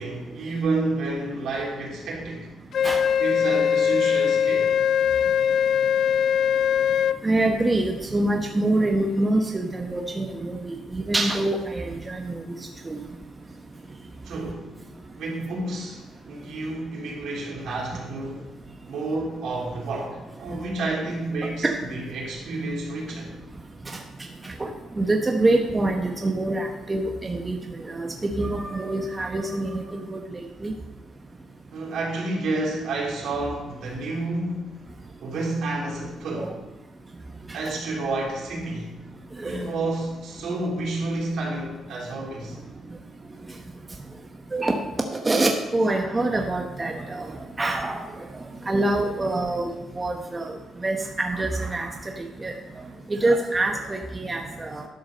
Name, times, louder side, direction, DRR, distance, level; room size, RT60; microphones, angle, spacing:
voice 1, 0.0-2.5 3.2-4.7 14.2-14.7 15.1-18.5 18.9-23.3 31.7-34.8 35.2-36.6 37.5-38.9 39.4-42.6, right 2 dB, 75° right, -3 dB, 3.3 m, -30 dB
Wind instrument woodwind instrument, 2.7-7.2, left 8 dB, 60° left, 0.3 m, -21 dB
voice 2, 7.2-12.4 12.8-13.0 21.6-21.7 23.9-24.0 24.4-24.7 25.0-27.6 27.9-30.7 36.4-36.5 39.4-39.7 44.5-44.8 45.1-48.0 48.7-50.6 50.8-51.9 52.4-52.5 53.1-54.8, right 2 dB, 25° right, 3 dB, 1.0 m, -25 dB
11.5 x 4.7 x 6.5 m, 1.1 s
cardioid pair, 90°, 0 cm